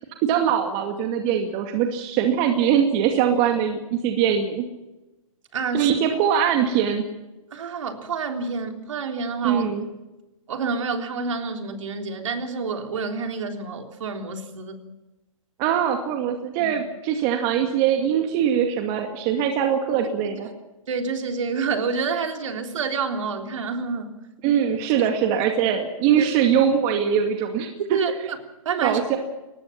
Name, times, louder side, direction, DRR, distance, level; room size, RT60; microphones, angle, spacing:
voice 1, 0.2-4.6 5.7-7.0 9.4-9.9 15.6-20.5 24.4-27.7 28.8-29.2, right 8 dB, 30° right, 4 dB, 2.3 m, -22 dB
voice 2, 5.5-6.0 7.5-9.6 10.5-14.8 16.6-16.8 20.9-24.1 26.2-26.3 27.9-28.4 28.7-29.0, right 5 dB, 60° right, 4 dB, 3.6 m, -28 dB
23.0 x 19.5 x 6.0 m, 1.0 s
hypercardioid pair, 130°, 18 cm